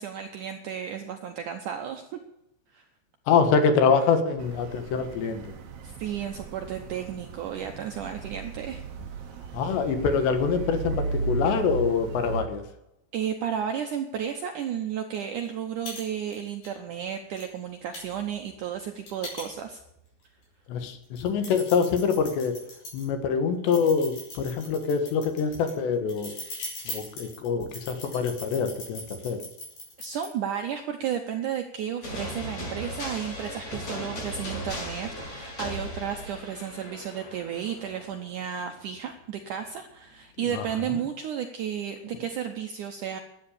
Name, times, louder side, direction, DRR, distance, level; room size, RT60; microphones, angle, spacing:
voice 1, 0.0-2.2 2.7-2.9 5.8-8.8 13.1-19.8 30.0-43.2, right 8 dB, 80° right, 5 dB, 1.8 m, -33 dB
voice 2, 3.3-5.5 9.5-12.6 20.7-22.6 22.9-26.4 26.9-29.4 40.5-41.0, left 5 dB, 90° left, 8 dB, 3.7 m, -25 dB
sound 1, 4.4-12.4, right 4 dB, 60° right, 2.1 m, -35 dB
sound 2, 15.4-15.5 15.9-16.0 16.3-16.7 17.4-17.5 17.9-19.9 20.4-20.5 21.0-23.0 23.7-30.3, left 2 dB, 60° left, 7.1 m, -40 dB
sound 3, 32.0-38.6, equal, 40° left, 6.8 m, -37 dB
12.5 x 8.9 x 8.6 m, 0.86 s
omnidirectional pair, 4.8 m